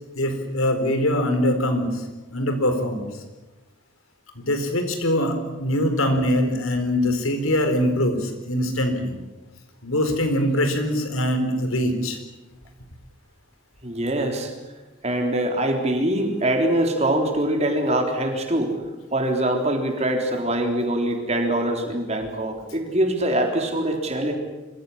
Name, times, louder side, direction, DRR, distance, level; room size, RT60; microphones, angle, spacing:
voice 1, 0.1-2.0 2.3-3.1 4.4-9.1 9.8-12.2, left 1 dB, 90° left, 6 dB, 4.4 m, -23 dB
voice 2, 13.8-14.5 15.0-18.7 19.1-24.3, right 1 dB, 30° right, 3 dB, 3.7 m, -23 dB
25.5 x 15.5 x 10.0 m, 1.1 s
head